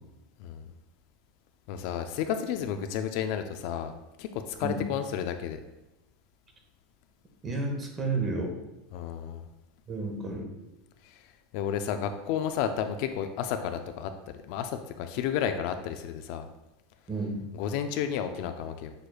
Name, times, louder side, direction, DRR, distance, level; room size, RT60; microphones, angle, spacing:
voice 1, 1.7-5.6 8.9-9.5 11.0-11.2 11.5-14.1 14.5-16.5 17.5-18.9, left 8 dB, 55° left, 8 dB, 0.3 m, -32 dB
voice 2, 7.4-8.5 9.9-10.5 17.1-17.4, right 3 dB, 20° right, 2 dB, 0.7 m, -31 dB
6.4 x 3.1 x 2.3 m, 0.97 s
supercardioid pair, 155°, 0 cm